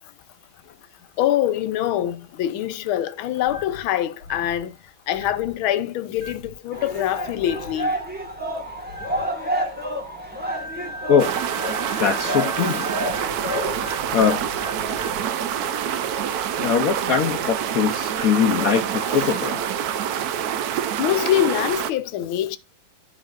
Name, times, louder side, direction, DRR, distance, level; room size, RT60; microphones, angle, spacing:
voice 1, 1.2-4.7 5.1-7.9 12.6-12.8 19.2-19.3 21.0-22.6, left 12 dB, 80° left, 1.5 m, -24 dB
sound 1, 3.5-3.8 4.2-4.6 5.1-5.5 6.2-6.5 7.4-7.7 8.9-9.2 10.5-15.2, left 1 dB, 55° right, 2.4 m, -38 dB
sound 2, 6.7-19.6, equal, 5° right, 1.5 m, -32 dB
sound 3, 11.2-21.9, right 9 dB, 80° right, 0.8 m, -26 dB
voice 2, 12.0-12.9 14.1-14.4 16.6-19.7, left 7 dB, 65° left, 0.9 m, -21 dB
12.5 x 5.0 x 2.5 m
omnidirectional pair, 2.2 m